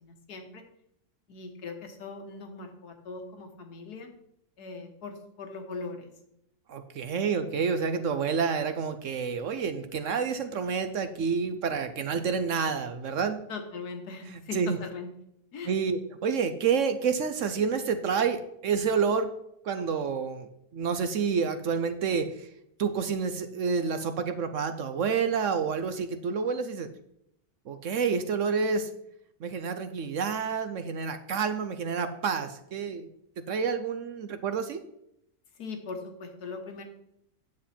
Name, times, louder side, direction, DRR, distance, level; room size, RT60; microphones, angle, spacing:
voice 1, 0.0-0.6 1.3-4.1 4.6-6.1 13.5-15.1 15.5-15.8 35.6-36.8, left 4 dB, 80° left, 5 dB, 1.8 m, -40 dB
voice 2, 6.7-13.4 14.3-14.8 15.7-19.3 19.6-20.5 20.7-22.3 22.8-26.9 27.7-28.9 29.4-33.1 33.5-34.8, right 5 dB, 60° right, 9 dB, 0.9 m, -29 dB
9.5 x 7.4 x 4.3 m, 0.76 s
omnidirectional pair, 1.6 m